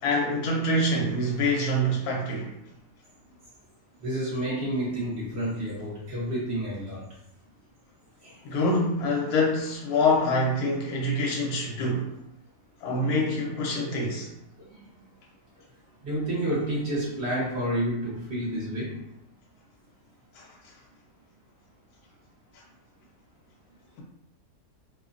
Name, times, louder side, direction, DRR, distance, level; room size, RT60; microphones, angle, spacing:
voice 1, 0.0-2.5 8.4-12.2 12.8-14.3 20.4-20.5, left 1 dB, 85° left, -1 dB, 1.2 m, -25 dB
voice 2, 4.0-7.1 8.2-8.4 13.0-13.1 14.7-14.8 16.0-19.0, right 1 dB, 50° right, -7 dB, 1.1 m, -30 dB
3.0 x 2.2 x 2.4 m, 0.82 s
omnidirectional pair, 1.6 m